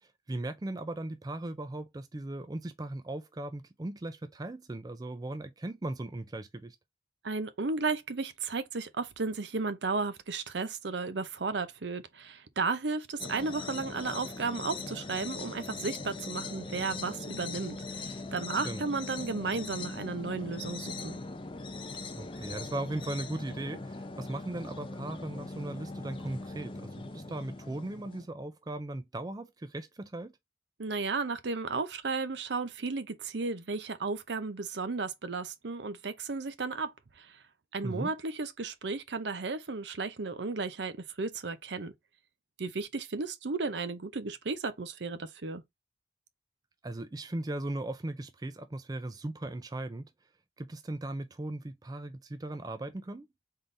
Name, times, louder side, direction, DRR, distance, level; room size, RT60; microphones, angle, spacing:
voice 1, 0.0-6.8 18.6-18.8 22.1-30.3 37.8-38.1 46.8-50.1 50.6-53.3, right 1 dB, 20° right, 0.4 m, -38 dB
voice 2, 7.2-21.2 30.8-37.4 37.7-41.9 42.6-45.6, right 4 dB, 65° right, 0.6 m, -34 dB
sound 1, 13.2-28.3, left 3 dB, 25° left, 0.6 m, -40 dB
4.0 x 3.7 x 3.2 m
head